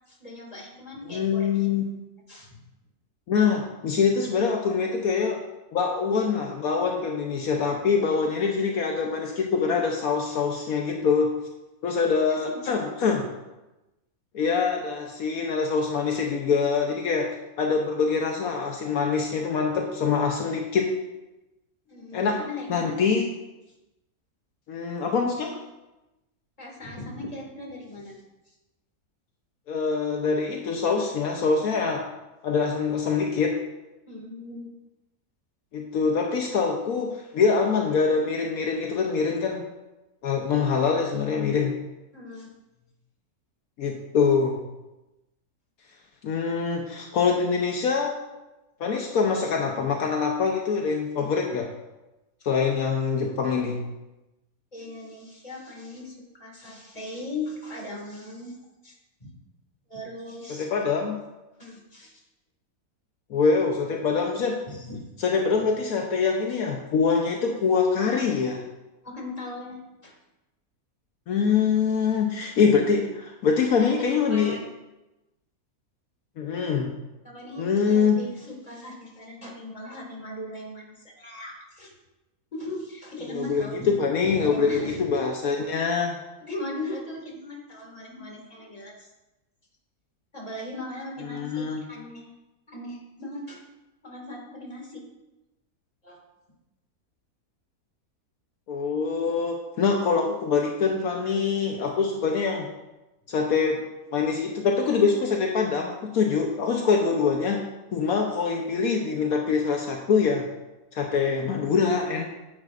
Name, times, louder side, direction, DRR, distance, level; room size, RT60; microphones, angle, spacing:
voice 1, 0.1-1.7 2.3-2.6 10.3-10.4 12.3-12.7 21.9-22.9 26.6-28.2 34.1-34.7 42.1-42.5 51.2-51.4 54.7-58.6 58.8-58.9 59.2-59.3 59.9-60.7 61.6-62.2 64.7-65.0 66.5-66.6 69.0-70.1 73.8-74.6 77.2-81.9 82.5-83.9 84.4-85.0 86.4-89.1 90.3-92.3 92.7-93.6 94.0-95.0 96.0-96.2, left 2 dB, 25° left, -1 dB, 2.3 m, -38 dB
voice 2, 1.1-1.9 3.3-5.4 5.7-11.3 11.8-13.2 14.3-17.3 17.6-20.9 22.1-22.4 22.7-23.3 24.7-25.6 29.7-32.0 32.4-33.6 35.7-39.6 40.2-41.7 43.8-44.6 46.2-48.2 48.8-51.7 52.4-53.8 60.5-61.2 63.3-64.6 65.2-68.6 71.3-74.6 76.4-76.9 77.6-78.2 83.3-86.2 91.2-91.8 98.7-102.7 103.3-103.8 104.1-107.6 107.9-110.5 110.9-112.2, left 5 dB, 75° left, 1 dB, 1.3 m, -24 dB
9.9 x 9.9 x 2.5 m, 1.0 s
omnidirectional pair, 1.6 m